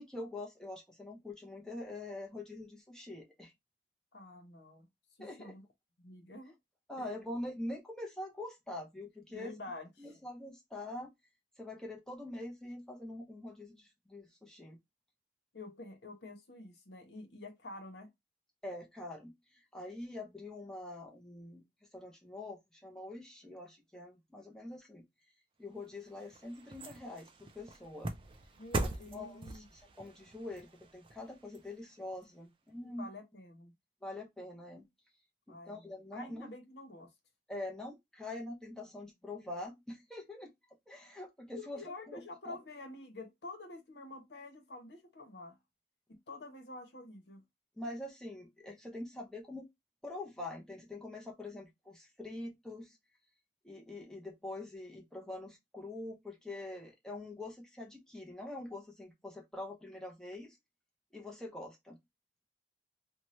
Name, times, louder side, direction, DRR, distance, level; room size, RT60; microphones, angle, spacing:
voice 1, 0.0-3.5 5.2-5.5 6.9-9.5 10.0-11.1 11.6-14.8 18.6-21.6 21.9-25.0 25.6-28.2 28.8-33.1 34.0-34.9 35.5-36.5 37.5-40.5 40.9-41.8 42.1-42.6 47.8-49.7 50.0-53.0 53.6-60.6 61.1-62.0, left 2 dB, 5° left, 0.7 m, -44 dB
voice 2, 4.1-4.9 5.2-5.6 6.0-6.6 6.9-7.1 9.3-10.1 15.5-18.1 28.6-29.7 33.0-33.7 35.5-37.1 41.5-45.6 46.1-47.4, left 2 dB, 80° left, 0.9 m, -48 dB
sound 1, 25.8-32.2 32.7-32.8, right 2 dB, 30° right, 0.4 m, -42 dB
2.8 x 2.2 x 3.1 m
head